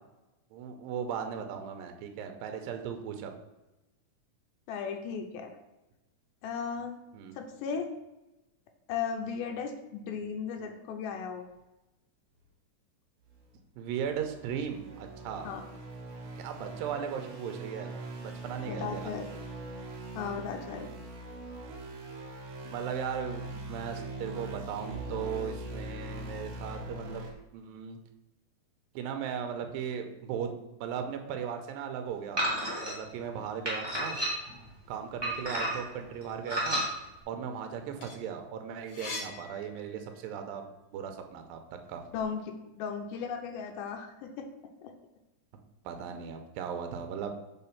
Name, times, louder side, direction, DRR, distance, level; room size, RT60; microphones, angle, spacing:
voice 1, 0.5-3.3 7.1-7.4 13.8-15.5 16.4-17.9 18.2-19.1 22.6-27.2 27.5-28.0 29.0-32.4 32.8-34.2 34.9-36.8 37.3-40.6 40.9-41.6 41.9-42.0 45.9-47.3, right 7 dB, 85° right, 6 dB, 2.4 m, -37 dB
voice 2, 4.7-5.5 6.4-6.9 7.3-7.9 8.9-11.5 15.4-15.7 18.7-19.3 20.1-20.9 42.1-44.5 44.8-44.9, left 6 dB, 85° left, 4 dB, 2.5 m, -36 dB
sound 1, 13.3-13.5 13.9-27.3, right 2 dB, 60° right, 2.4 m, -42 dB
sound 2, 32.4-32.9 33.6-34.6 35.2-35.9 36.5-36.9, equal, 10° right, 1.1 m, -31 dB
sound 3, 37.7-40.4 40.8-42.3, left 3 dB, 70° left, 1.5 m, -44 dB
6.7 x 3.8 x 5.7 m, 0.99 s
omnidirectional pair, 4.1 m